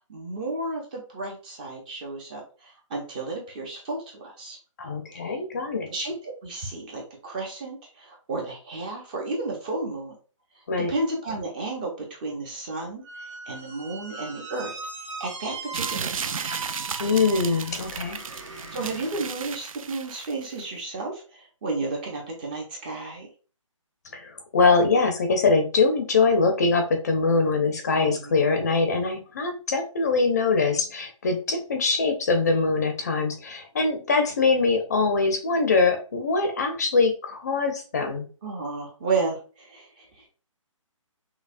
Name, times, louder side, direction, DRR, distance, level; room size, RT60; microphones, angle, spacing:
voice 1, 0.1-4.6 5.1-5.4 5.9-10.1 10.9-14.7 15.2-16.5 18.7-23.3 28.1-28.5 38.4-40.3, right 3 dB, 15° right, -1 dB, 0.5 m, -32 dB
voice 2, 4.8-5.9 10.7-10.9 17.0-18.2 24.1-38.3, left 4 dB, 30° left, 5 dB, 0.5 m, -23 dB
Squeak, 13.0-19.1, right 3 dB, 65° right, 1.2 m, -39 dB
sound 1, 15.7-20.6, right 6 dB, 85° right, 0.4 m, -34 dB
5.5 x 2.1 x 2.5 m, 0.37 s
hypercardioid pair, 165°, 17 cm